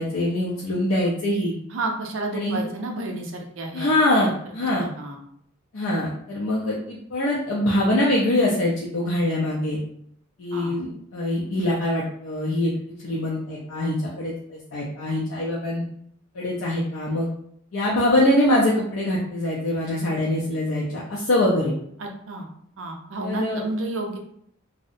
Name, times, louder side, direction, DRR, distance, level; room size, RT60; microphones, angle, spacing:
voice 1, 0.0-1.5 2.3-2.6 3.7-4.8 5.7-9.8 10.4-12.7 13.0-15.8 16.3-17.3 17.7-21.7 23.2-23.6, left 1 dB, 80° left, -5 dB, 0.5 m, -23 dB
voice 2, 1.7-3.9 4.2-4.3 4.8-5.2 10.5-10.8 22.0-22.5 22.8-24.2, right 2 dB, 65° right, 2 dB, 0.5 m, -31 dB
2.6 x 2.0 x 2.4 m, 0.69 s
head